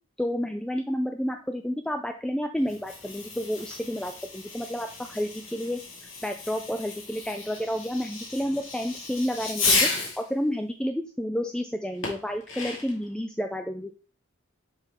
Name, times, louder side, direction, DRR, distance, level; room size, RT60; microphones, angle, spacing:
voice 1, 0.2-5.8 6.2-9.9 10.2-13.9, equal, 5° left, 5 dB, 0.3 m, -30 dB
Fireworks, 2.6-10.3 12.0-13.0, left 3 dB, 80° left, 2.1 m, -32 dB
6.8 x 3.8 x 4.3 m, 0.37 s
head